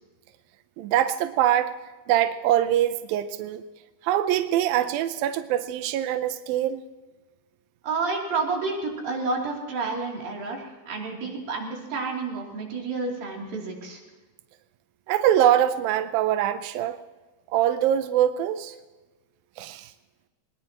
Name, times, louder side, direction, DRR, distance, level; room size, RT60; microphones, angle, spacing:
voice 1, 0.8-1.7 2.1-3.6 4.0-6.8 15.1-17.0 17.5-18.7 19.6-19.9, right 11 dB, 80° right, 10 dB, 2.1 m, -23 dB
voice 2, 7.8-14.0, right 3 dB, 60° right, -1 dB, 4.6 m, -30 dB
21.5 x 20.5 x 2.9 m, 1.2 s
omnidirectional pair, 4.9 m